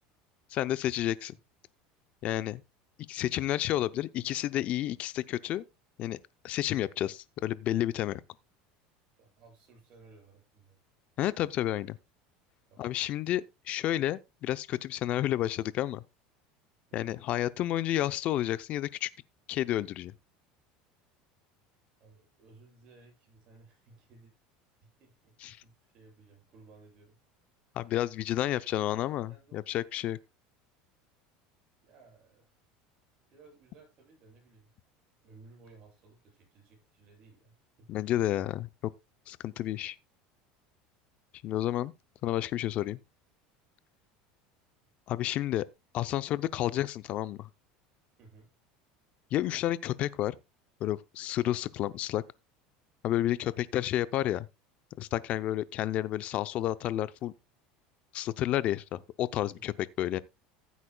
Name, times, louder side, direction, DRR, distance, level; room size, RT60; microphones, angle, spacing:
voice 1, 0.5-1.3 2.2-2.6 3.1-5.6 6.0-6.2 6.4-8.2 11.2-12.0 12.8-16.0 16.9-19.1 19.5-20.1 25.4-25.6 27.7-30.2 37.9-38.7 39.3-40.0 41.4-41.9 42.2-43.0 45.1-45.6 45.9-47.5 49.3-50.4 50.8-52.2 53.0-54.5 55.0-57.3 58.1-59.7 60.0-60.2, left 13 dB, 45° left, 0.6 m, -30 dB
voice 2, 9.2-10.8 12.7-12.9 16.9-17.2 22.0-24.3 24.8-27.2 28.8-29.0 29.3-29.6 31.8-32.6 33.3-34.7 35.2-38.0 48.2-48.5 53.4-53.6 59.5-59.8, right 3 dB, 40° right, 7.8 m, -58 dB
14.5 x 8.3 x 2.3 m
supercardioid pair, 145°, 3 cm